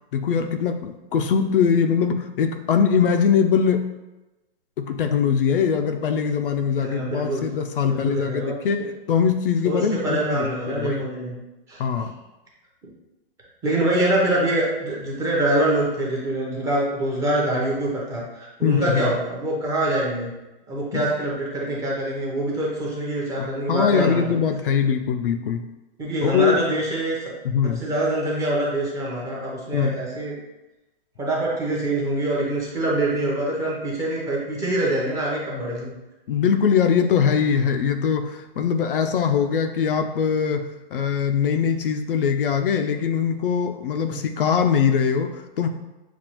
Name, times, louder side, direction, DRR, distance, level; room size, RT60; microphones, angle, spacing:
voice 1, 0.1-3.9 4.8-11.1 11.8-12.1 18.6-19.1 20.9-21.1 23.4-25.7 26.2-26.6 27.4-27.8 29.7-30.0 36.3-45.7, left 7 dB, 65° left, 6 dB, 0.5 m, -22 dB
voice 2, 6.6-7.4 7.8-8.6 9.6-11.3 11.7-11.8 12.8-12.9 13.6-20.3 20.7-24.4 26.0-27.2 27.8-30.4 31.2-35.9 44.0-44.2, right 1 dB, 10° right, -5 dB, 0.7 m, -25 dB
6.9 x 2.4 x 3.0 m, 1.0 s
hypercardioid pair, 155°, 29 cm